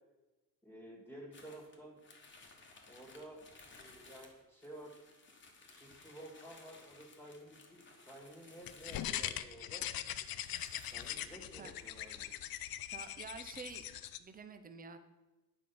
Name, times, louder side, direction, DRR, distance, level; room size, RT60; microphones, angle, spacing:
voice 1, 0.6-2.0 2.9-3.4 3.8-5.0 5.7-9.9 10.9-12.3, right 1 dB, 5° left, -1 dB, 2.0 m, -52 dB
Folding paper, 1.3-9.5 9.9-10.0 10.1-12.1, left 3 dB, 30° left, 1.2 m, -59 dB
sound 1, 8.7-14.2, left 12 dB, 80° left, 0.6 m, -41 dB
voice 2, 12.9-13.9 14.2-15.0, right 5 dB, 25° right, 9 dB, 0.7 m, -48 dB
9.8 x 5.1 x 7.0 m, 1.1 s
wide cardioid pair, 175°, 36 cm